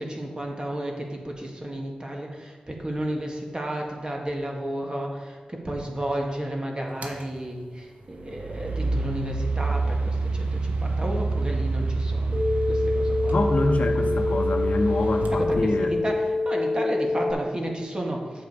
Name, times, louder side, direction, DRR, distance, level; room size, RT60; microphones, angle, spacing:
voice 1, 0.0-5.4 5.6-13.4 15.3-18.4, right 1 dB, 35° right, 0 dB, 1.8 m, -32 dB
sound 1, 7.0-7.2 8.1-16.1, right 3 dB, 70° right, 1.0 m, -27 dB
sound 2, 12.3-17.3, left 3 dB, 20° left, 2.2 m, -26 dB
voice 2, 13.3-16.0, left 2 dB, 60° left, 6 dB, 0.8 m, -26 dB
8.1 x 6.3 x 4.9 m, 1.4 s
cardioid pair, 40°, 3 cm